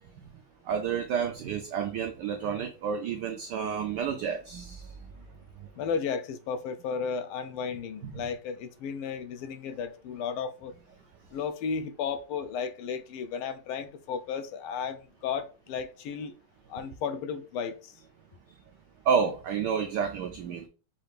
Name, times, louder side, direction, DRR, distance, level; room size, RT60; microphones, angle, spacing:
voice 1, 0.6-5.0 5.6-5.7 8.0-8.3 19.0-20.7, right 7 dB, 85° right, 0.9 m, -30 dB
voice 2, 5.7-10.7 11.3-16.3 16.7-17.9, left 6 dB, 80° left, 1.4 m, -34 dB
5.6 x 2.4 x 3.3 m
omnidirectional pair, 2.4 m